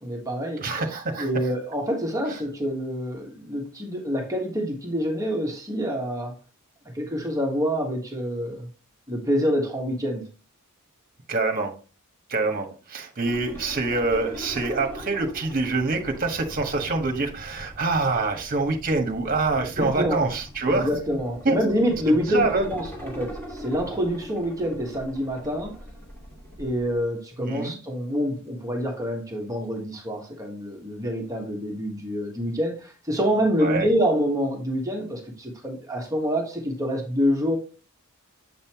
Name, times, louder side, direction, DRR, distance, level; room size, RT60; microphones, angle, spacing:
voice 1, 0.0-0.7 1.2-6.4 6.9-8.7 9.1-10.3 19.8-20.3 20.6-25.8 26.6-37.6, equal, 15° right, 1.4 m, -26 dB
voice 2, 0.6-1.3 11.3-11.7 12.3-20.9 21.4-21.6 22.1-22.7 27.4-27.8 33.6-33.9, right 3 dB, 40° right, 1.4 m, -25 dB
sound 1, 13.2-27.0, equal, 10° left, 2.4 m, -41 dB
7.7 x 5.5 x 2.9 m
head